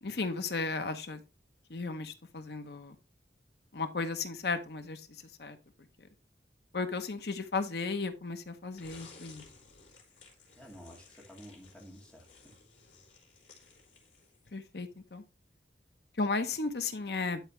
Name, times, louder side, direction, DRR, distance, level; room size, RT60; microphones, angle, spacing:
voice 1, 0.0-1.2 1.7-2.9 3.7-5.1 5.4-5.6 6.0-6.1 6.7-9.4 14.5-15.2 16.2-17.4, left 3 dB, 65° left, 0.9 m, -35 dB
sound 1, 8.8-14.7, left 4 dB, 80° left, 3.6 m, -56 dB
voice 2, 10.6-12.6, equal, 5° left, 2.4 m, -52 dB
11.5 x 4.8 x 3.1 m
head